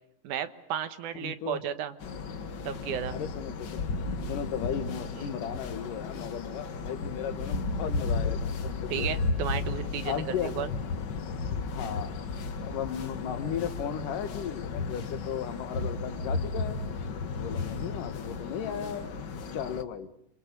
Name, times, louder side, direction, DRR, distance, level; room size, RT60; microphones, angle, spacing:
voice 1, 0.2-1.9 2.6-3.1 5.2-5.3 8.9-10.7, right 9 dB, 75° right, 11 dB, 2.6 m, -33 dB
voice 2, 1.1-1.6 3.1-3.9 4.3-9.1 10.0-10.5 11.7-12.1 12.6-16.8 17.3-19.0 19.5-20.1, left 8 dB, 85° left, 10 dB, 3.2 m, -35 dB
sound 1, 2.0-19.8, left 4 dB, 55° left, 1.2 m, -34 dB
27.5 x 26.0 x 6.8 m, 0.76 s
omnidirectional pair, 3.7 m